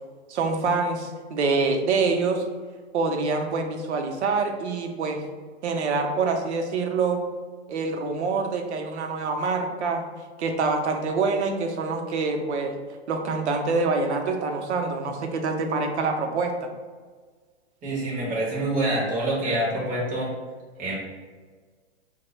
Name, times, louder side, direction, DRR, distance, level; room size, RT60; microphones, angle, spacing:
voice 1, 0.3-2.4 2.9-5.2 5.6-7.2 7.7-10.0 10.4-12.8 13.1-16.7, right 4 dB, 90° right, 4 dB, 0.6 m, -26 dB
voice 2, 17.8-20.3 20.8-21.0, right 1 dB, 25° right, -6 dB, 1.1 m, -26 dB
3.7 x 2.2 x 3.1 m, 1.5 s
hypercardioid pair, 145°, 33 cm